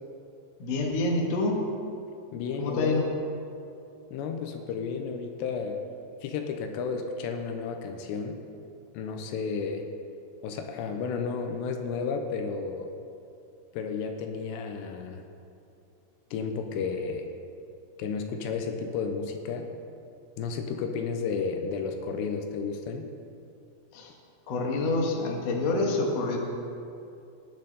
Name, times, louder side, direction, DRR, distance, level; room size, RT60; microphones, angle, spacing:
voice 1, 0.6-1.6 2.6-3.0 23.9-24.1 24.5-26.4, left 2 dB, 55° left, 0 dB, 1.8 m, -27 dB
voice 2, 2.3-3.0 4.1-5.8 6.2-8.4 8.9-9.8 10.4-12.9 13.7-15.2 16.3-17.3 18.0-19.7 20.4-23.1, left 5 dB, 85° left, 5 dB, 2.9 m, -32 dB
18.5 x 8.5 x 4.1 m, 2.6 s
omnidirectional pair, 5.0 m